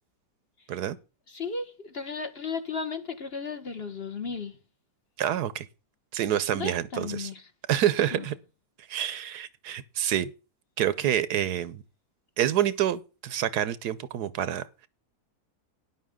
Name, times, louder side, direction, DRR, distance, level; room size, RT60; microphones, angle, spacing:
voice 1, 1.3-4.6 6.5-7.4 8.1-8.3, left 5 dB, 40° left, 1.4 m, -35 dB
voice 2, 5.2-5.7 6.1-7.3 7.7-8.3 8.9-10.3 10.8-11.8 12.4-14.9, right 11 dB, 75° right, 1.3 m, -27 dB
13.0 x 10.0 x 3.6 m
omnidirectional pair, 1.8 m